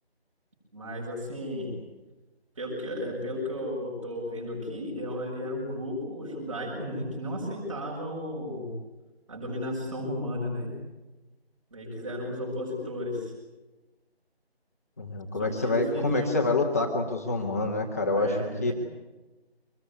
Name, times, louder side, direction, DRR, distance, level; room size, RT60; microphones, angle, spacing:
voice 1, 0.7-1.8 2.6-8.7 9.3-10.7 11.7-13.3 15.3-16.4 18.1-18.7, left 1 dB, 30° right, -3 dB, 6.8 m, -34 dB
voice 2, 15.0-18.7, left 2 dB, 15° left, 0 dB, 1.5 m, -27 dB
25.5 x 20.5 x 9.7 m, 1.1 s
figure-of-eight pair, 165°, 32 cm